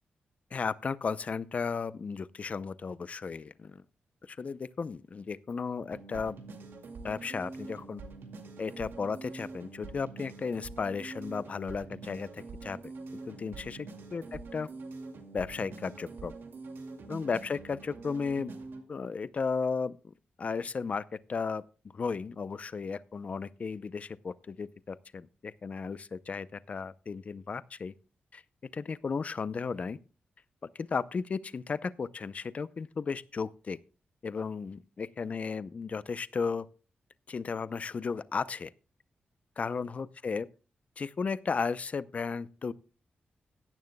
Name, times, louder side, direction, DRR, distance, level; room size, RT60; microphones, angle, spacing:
voice 1, 0.5-3.8 4.2-6.4 7.0-8.0 8.6-12.9 13.3-14.2 14.5-14.7 15.3-16.3 17.1-18.5 18.9-20.1 20.4-21.0 21.3-21.6 21.9-27.9 28.3-28.4 28.7-30.0 30.7-33.8 34.2-36.7 37.3-38.7 39.6-40.5 41.0-42.7, left 5 dB, 40° left, 0.5 m, -34 dB
sound 1, 5.9-18.8, right 3 dB, 75° right, 2.2 m, -45 dB
16.0 x 11.0 x 2.2 m
wide cardioid pair, 155°, 4 cm